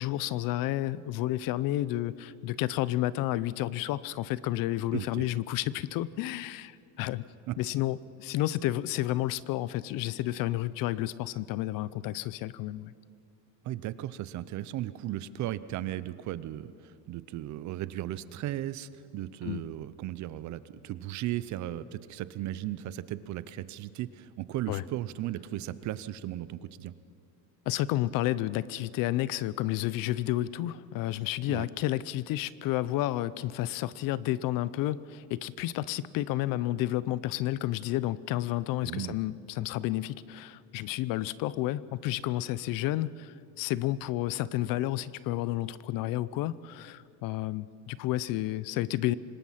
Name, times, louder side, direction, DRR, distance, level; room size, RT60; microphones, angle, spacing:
voice 1, 0.0-7.2 7.6-12.9 19.4-19.6 24.7-24.8 27.7-49.1, left 15 dB, 50° left, 19 dB, 0.6 m, -31 dB
voice 2, 4.9-5.3 7.5-7.6 13.6-26.9 31.5-31.7 38.8-39.2, right 13 dB, 40° right, 16 dB, 0.6 m, -36 dB
25.5 x 20.0 x 5.8 m, 2.4 s
cardioid pair, 150°, 43 cm